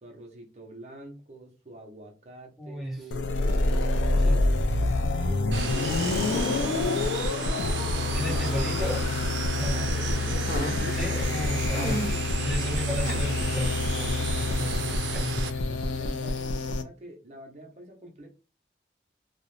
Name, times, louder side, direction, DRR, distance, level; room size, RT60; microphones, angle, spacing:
voice 1, 0.0-4.6 5.3-6.9 7.4-9.2 9.5-10.3 10.8-11.0 15.6-18.3, right 1 dB, 40° right, 0.6 m, -45 dB
voice 2, 2.6-3.0 4.2-4.4 8.1-9.0 9.5-9.9 10.9-15.8, equal, ahead, 0.9 m, -34 dB
sound 1, 3.1-16.8, left 2 dB, 90° left, 0.4 m, -27 dB
sound 2, 5.5-6.9 7.2-7.3 10.1-10.9 11.7-12.3 13.0-13.2, equal, 75° left, 0.9 m, -34 dB
sound 3, 5.5-15.5, right 6 dB, 80° right, 0.4 m, -35 dB
2.4 x 2.0 x 3.0 m
head